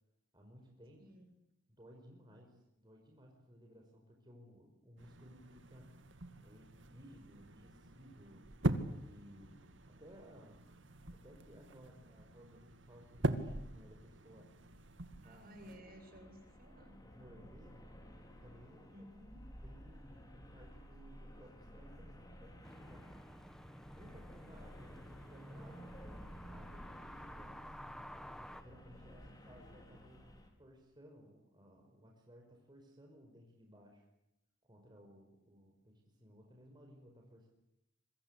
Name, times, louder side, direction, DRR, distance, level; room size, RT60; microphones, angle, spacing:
voice 1, 0.3-1.0 1.7-6.0 6.4-8.7 9.0-10.8 11.2-14.5 15.2-15.5 17.1-17.9 18.4-19.1 19.6-23.6 24.0-28.0 28.6-30.3 30.6-34.1 34.6-37.5, equal, 20° right, 1 dB, 5.4 m, -59 dB
voice 2, 1.0-1.3 15.2-17.0 18.9-19.4, equal, 50° right, 5 dB, 7.8 m, -56 dB
sound 1, 5.0-15.8, right 1 dB, 70° right, 2.2 m, -42 dB
sound 2, 15.6-30.5, equal, 20° left, 5.1 m, -54 dB
sound 3, 22.6-28.6, equal, 5° left, 1.5 m, -52 dB
27.0 x 23.5 x 8.3 m, 0.85 s
head